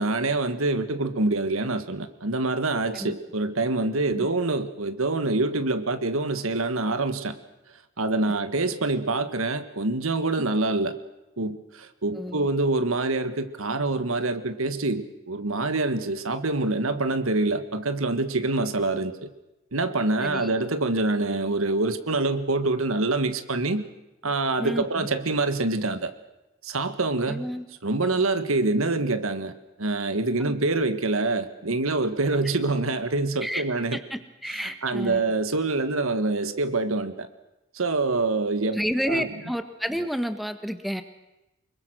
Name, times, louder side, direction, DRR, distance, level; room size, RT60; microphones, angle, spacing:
voice 1, 0.0-7.4 8.0-10.9 11.4-19.3 19.7-23.8 24.2-26.1 26.6-27.4 27.8-29.5 29.8-34.0 34.6-37.3 37.7-38.8 39.1-39.3, right 2 dB, 90° right, 10 dB, 1.6 m, -25 dB
voice 2, 12.1-12.5 20.2-20.5 24.6-25.1 27.3-27.6 30.4-30.5 33.4-33.7 33.9-35.2 38.7-41.0, equal, ahead, 9 dB, 1.4 m, -30 dB
25.0 x 22.0 x 6.3 m, 0.98 s
head